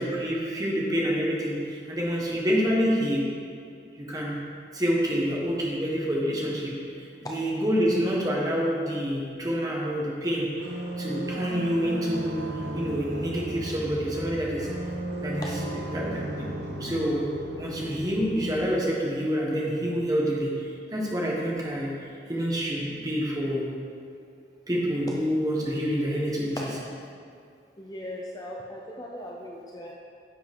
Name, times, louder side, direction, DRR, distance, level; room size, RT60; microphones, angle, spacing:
voice 1, 0.0-3.3 3.9-4.4 4.7-12.4 12.7-14.7 15.2-15.5 15.9-17.2 17.6-21.9 22.3-23.6 24.7-26.6, equal, 20° right, -4 dB, 1.4 m, -27 dB
sound 1, 10.6-18.6, right 1 dB, 90° right, 1.2 m, -34 dB
voice 2, 15.4-15.8 26.6-26.7 27.8-29.9, left 1 dB, 20° left, -2 dB, 0.6 m, -38 dB
10.0 x 7.1 x 3.7 m, 2.3 s
head